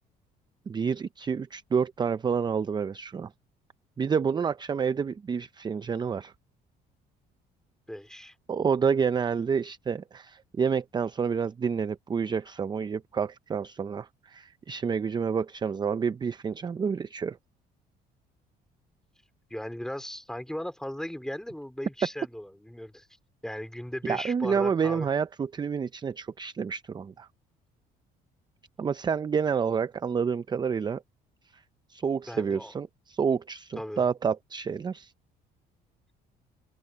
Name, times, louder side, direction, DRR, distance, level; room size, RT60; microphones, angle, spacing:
voice 1, 0.7-3.3 4.0-6.3 8.5-17.4 24.1-27.3 28.8-31.0 31.5-31.6 31.9-35.1, right 6 dB, 25° right, 0.5 m, -29 dB
voice 2, 7.9-8.3 19.5-23.1 23.4-25.1 32.3-32.7 33.8-34.0, equal, 5° left, 4.2 m, -37 dB
open air
cardioid pair, 110°, 17 cm